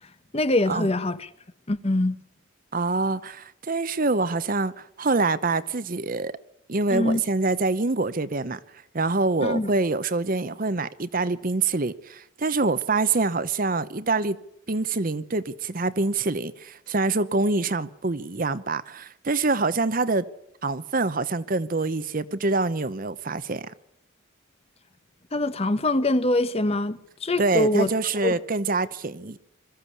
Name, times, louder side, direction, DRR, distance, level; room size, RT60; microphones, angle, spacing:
voice 1, 0.3-1.3 1.7-2.2 6.9-7.2 9.4-9.7 25.3-27.9 28.2-28.4, left 2 dB, 30° left, 0.9 m, -24 dB
voice 2, 2.7-6.3 6.7-8.6 8.9-14.4 14.7-20.2 20.6-23.7 27.4-29.4, right 3 dB, 40° right, 0.8 m, -25 dB
22.0 x 14.0 x 8.5 m
head